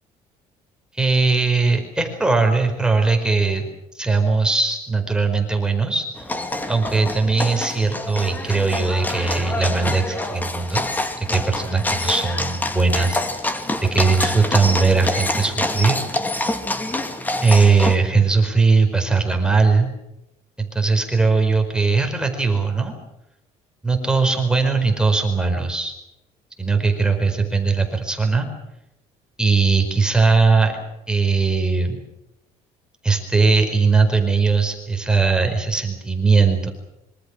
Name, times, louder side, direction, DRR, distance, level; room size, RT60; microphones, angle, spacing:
voice 1, 0.9-3.7 3.9-6.1 6.7-10.8 11.3-13.5 13.8-16.0 17.4-19.9 20.6-22.9 23.8-25.9 26.6-28.5 29.4-30.8 31.1-32.0 33.0-36.7, right 4 dB, 5° right, 4 dB, 4.7 m, -19 dB
sound 1, 6.2-18.0, left 2 dB, 10° left, 2.5 m, -26 dB
26.0 x 24.5 x 6.4 m, 0.88 s
cardioid pair, 150°, 14 cm